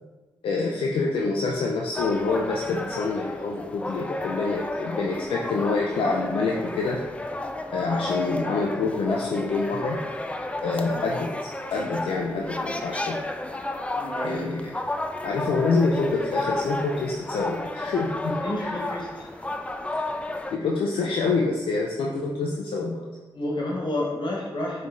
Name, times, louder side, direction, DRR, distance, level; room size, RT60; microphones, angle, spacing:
voice 1, 0.4-7.0 7.7-10.0 10.6-13.2 14.2-14.7 15.2-18.8 20.5-23.1, left 3 dB, 80° left, -1 dB, 0.4 m, -26 dB
sound 1, 1.9-20.6, left 2 dB, 15° left, 0.4 m, -32 dB
voice 2, 14.0-14.5 18.4-19.4 23.3-24.9, left 1 dB, 55° left, -3 dB, 1.3 m, -30 dB
5.3 x 3.2 x 2.5 m, 1.3 s
supercardioid pair, 45°, 9 cm